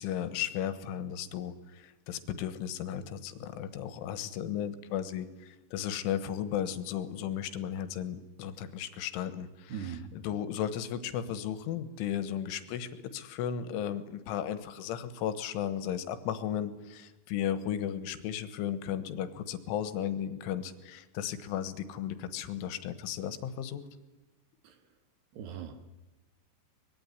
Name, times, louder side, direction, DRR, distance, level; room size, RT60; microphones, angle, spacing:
voice 1, 0.0-23.8, left 9 dB, 85° left, 12 dB, 3.8 m, -35 dB
voice 2, 9.7-10.1 24.6-24.8 25.3-25.9, right 8 dB, 65° right, 8 dB, 3.6 m, -40 dB
24.0 x 21.5 x 9.8 m, 1.1 s
omnidirectional pair, 5.5 m